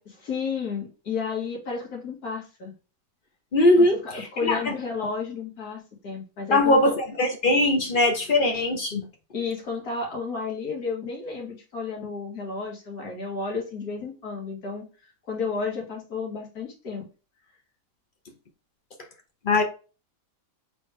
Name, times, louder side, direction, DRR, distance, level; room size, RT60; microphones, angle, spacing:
voice 1, 0.1-2.7 3.8-7.0 9.3-14.8 15.3-17.0, left 4 dB, 65° left, 2.1 m, -32 dB
voice 2, 3.5-4.0 4.4-4.6 6.5-9.0 19.5-19.6, left 1 dB, 45° left, 0.8 m, -20 dB
4.1 x 3.5 x 3.1 m
omnidirectional pair, 1.8 m